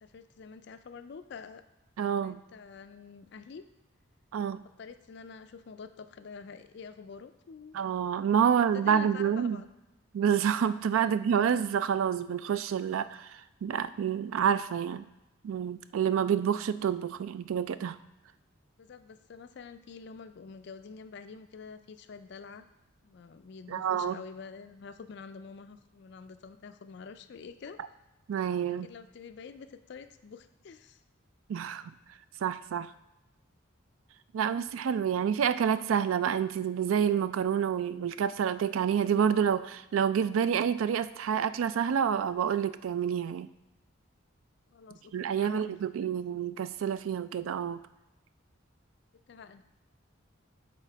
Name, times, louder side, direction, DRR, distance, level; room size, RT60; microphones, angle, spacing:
voice 1, 0.0-1.6 2.2-3.6 4.8-7.8 8.7-9.7 11.0-11.2 18.8-22.7 23.0-27.8 28.6-31.0 44.7-46.2 49.3-49.6, left 5 dB, 55° left, 10 dB, 0.4 m, -47 dB
voice 2, 2.0-2.4 4.3-4.6 7.7-9.6 10.1-15.0 15.4-18.0 23.7-24.2 28.3-28.9 31.5-31.8 32.4-32.9 34.3-43.5 45.1-47.8, right 8 dB, 85° right, 14 dB, 0.3 m, -28 dB
6.9 x 3.5 x 4.5 m, 0.99 s
head